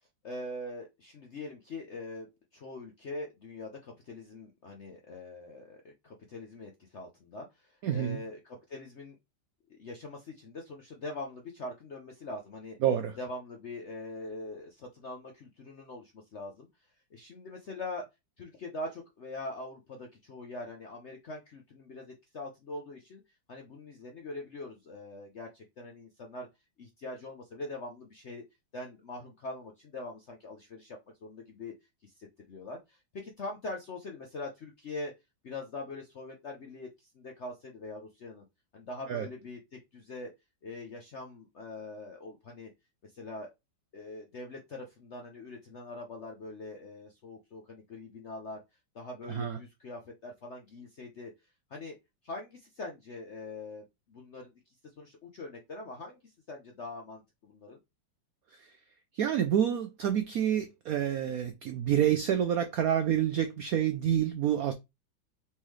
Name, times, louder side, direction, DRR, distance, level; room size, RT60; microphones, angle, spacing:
voice 1, 0.2-9.2 9.7-12.8 13.2-16.7 17.1-18.1 18.4-23.2 23.5-26.5 26.8-28.4 28.7-31.7 32.0-35.1 35.4-38.4 38.7-40.3 40.6-42.7 43.0-43.5 43.9-48.6 48.9-51.3 51.7-52.0 52.2-54.5 55.0-57.8, left 2 dB, 60° left, 0.7 m, -43 dB
voice 2, 7.8-8.2 12.8-13.2 39.1-39.3 49.3-49.6 58.6-58.7 59.1-64.7, right 10 dB, 75° right, 0.8 m, -28 dB
4.2 x 3.7 x 3.1 m
omnidirectional pair, 2.1 m